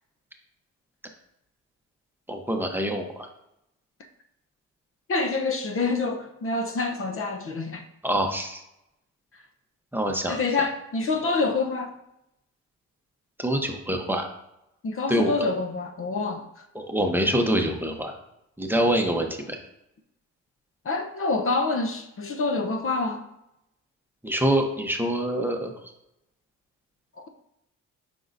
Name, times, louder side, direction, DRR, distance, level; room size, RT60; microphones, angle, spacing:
voice 1, 2.3-3.3 8.0-8.6 9.9-10.4 13.4-14.2 15.1-15.3 16.7-18.1 18.6-19.6 24.2-25.7, right 1 dB, 5° right, 2 dB, 0.9 m, -25 dB
voice 2, 5.1-7.9 10.3-11.9 14.8-16.7 20.8-23.2 27.2-27.3, left 3 dB, 45° left, 5 dB, 0.8 m, -27 dB
7.5 x 5.2 x 2.6 m, 0.84 s
cardioid pair, 90°, 30 cm